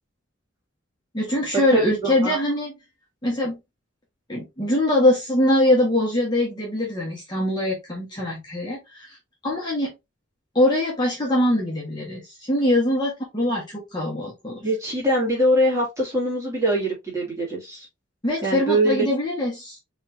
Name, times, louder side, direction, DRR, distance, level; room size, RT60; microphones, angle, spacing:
voice 1, 1.1-2.7 3.2-3.6 4.3-9.1 9.4-9.9 10.5-14.6 18.2-19.8, left 1 dB, 20° left, 1.6 m, -23 dB
voice 2, 1.7-2.4 14.6-17.9 18.4-19.1, right 1 dB, 15° right, 2.5 m, -23 dB
5.0 x 3.5 x 2.8 m
head